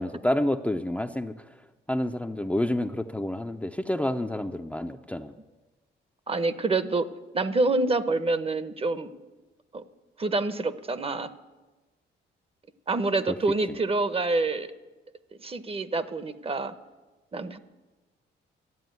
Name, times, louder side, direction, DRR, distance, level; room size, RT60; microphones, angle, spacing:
voice 1, 0.0-1.6 1.9-5.3, left 1 dB, 5° left, 5 dB, 0.5 m, -29 dB
voice 2, 6.3-9.1 9.7-9.8 10.2-11.3 12.9-14.7 15.4-16.7 17.3-17.6, right 3 dB, 30° right, 14 dB, 0.8 m, -27 dB
13.0 x 8.5 x 9.3 m, 1.2 s
cardioid pair, 90°, 20 cm